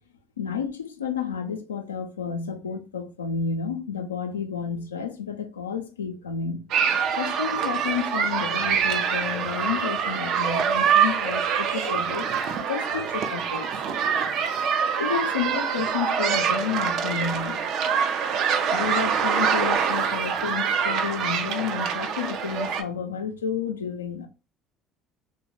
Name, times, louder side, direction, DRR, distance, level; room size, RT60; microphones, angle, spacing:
voice 1, 0.4-6.6 7.1-12.3 12.7-13.8 15.0-17.6 18.7-24.3, left 6 dB, 90° left, 0.3 m, -31 dB
sound 1, 6.7-22.8, right 7 dB, 60° right, 0.4 m, -25 dB
2.8 x 2.1 x 3.0 m
hypercardioid pair, 60°, 0 cm